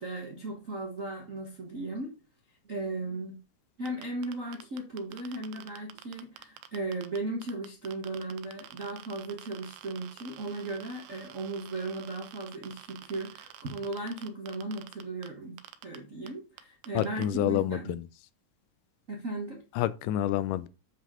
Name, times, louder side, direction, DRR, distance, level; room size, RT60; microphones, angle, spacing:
voice 1, 0.0-2.2 2.6-3.4 3.8-17.9 19.1-19.6, right 2 dB, 55° right, 0.8 m, -36 dB
sound 1, 3.9-7.2 7.4-15.3 15.6-16.0 16.3-16.4 16.6-17.3, right 12 dB, 80° right, 2.1 m, -49 dB
voice 2, 16.9-18.1 19.8-20.7, left 12 dB, 85° left, 2.2 m, -28 dB
7.9 x 5.4 x 3.7 m
omnidirectional pair, 3.7 m